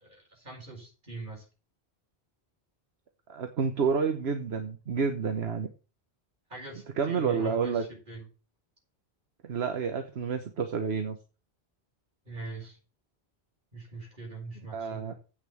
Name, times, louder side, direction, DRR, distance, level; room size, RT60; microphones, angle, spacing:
voice 1, 0.0-1.5 6.5-8.3 12.3-12.8 13.7-15.2, right 3 dB, 50° right, -1 dB, 5.3 m, -42 dB
voice 2, 3.3-5.7 7.0-7.8 9.4-11.2 14.7-15.1, right 5 dB, 75° right, 7 dB, 1.3 m, -29 dB
8.4 x 6.3 x 7.7 m, 0.34 s
omnidirectional pair, 1.1 m